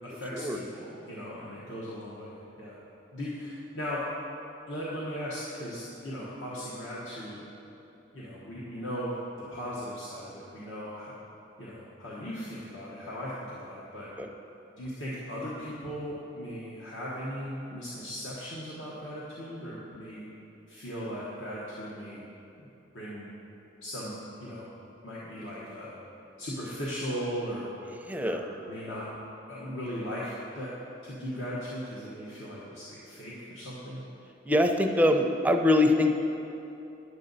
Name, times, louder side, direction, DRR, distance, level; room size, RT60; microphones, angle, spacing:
voice 1, 0.0-2.8 3.1-4.0 4.7-7.5 8.1-11.1 11.6-14.1 14.8-20.2 20.7-22.2 22.9-23.3 23.8-24.7 25.0-25.9 26.4-27.7 28.2-29.1 29.5-30.7 31.0-34.0, equal, 80° left, -7 dB, 1.2 m, -38 dB
voice 2, 28.1-28.4 34.5-36.2, left 1 dB, 10° right, 4 dB, 0.4 m, -23 dB
9.6 x 7.6 x 4.0 m, 2.9 s
head